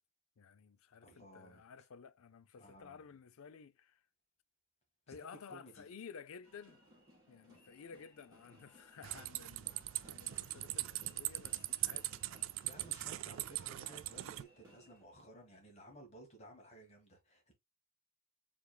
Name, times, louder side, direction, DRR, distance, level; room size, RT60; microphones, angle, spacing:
voice 1, 0.4-4.0 5.1-6.8 7.3-12.5, left 6 dB, 75° left, 0.4 m, -54 dB
voice 2, 1.0-1.6 2.5-3.1 5.1-5.9 12.6-17.5, right 1 dB, 30° left, 1.6 m, -56 dB
sound 1, 6.4-15.0, equal, 15° right, 2.6 m, -64 dB
sound 2, 9.0-14.4, right 16 dB, 65° right, 0.3 m, -40 dB
4.8 x 3.5 x 2.2 m
head